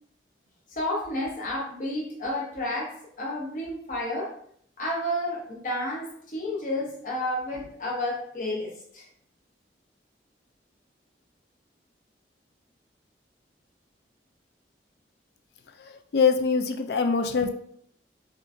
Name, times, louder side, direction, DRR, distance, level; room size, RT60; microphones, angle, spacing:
voice 1, 0.8-4.3 4.8-9.0, left 1 dB, 45° left, -3 dB, 0.7 m, -31 dB
voice 2, 15.8-17.5, left 5 dB, 65° left, 7 dB, 0.3 m, -24 dB
3.6 x 2.5 x 2.5 m, 0.65 s
head